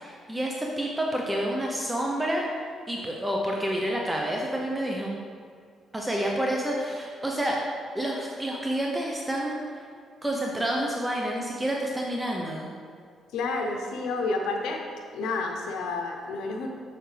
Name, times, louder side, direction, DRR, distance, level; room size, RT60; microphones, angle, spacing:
voice 1, 0.0-2.5 2.9-5.1 5.9-7.6 7.9-9.8 10.2-12.7, right 1 dB, 10° right, -1 dB, 0.8 m, -29 dB
voice 2, 13.3-14.8 15.1-16.7, left 3 dB, 85° left, 2 dB, 0.8 m, -30 dB
7.4 x 6.8 x 3.4 m, 2.2 s
cardioid pair, 90°, 0 cm